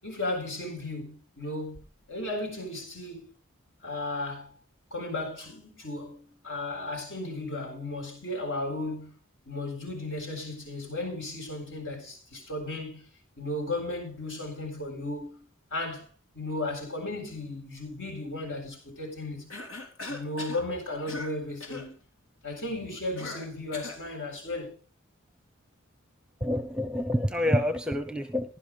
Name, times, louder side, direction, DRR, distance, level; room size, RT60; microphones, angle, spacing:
voice 1, 0.0-1.8 2.1-3.2 3.8-4.5 4.9-9.1 9.5-13.1 13.4-15.4 15.7-16.1 16.3-19.5 20.1-21.9 22.4-24.8, left 2 dB, 65° left, 7.6 m, -35 dB
Cough, 19.5-20.7 21.1-21.3 21.6-21.9 23.2-24.0, left 3 dB, 85° left, 3.6 m, -39 dB
voice 2, 26.4-28.6, equal, 5° right, 0.8 m, -27 dB
16.0 x 11.5 x 4.1 m
head